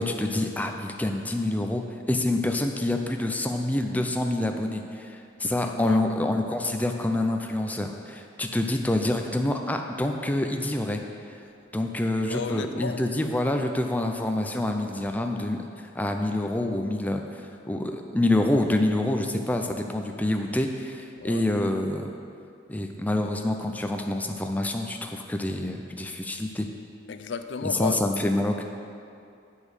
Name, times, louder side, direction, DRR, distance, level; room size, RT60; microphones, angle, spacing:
voice 1, 0.0-1.8 2.1-11.0 11.3-11.4 11.7-22.1 22.7-26.7 27.6-28.6, left 1 dB, 10° left, 4 dB, 0.5 m, -27 dB
voice 2, 5.4-6.0 12.3-13.0 21.2-21.4 27.1-28.0, left 5 dB, 65° left, 9 dB, 0.5 m, -33 dB
8.3 x 5.4 x 6.3 m, 2.5 s
head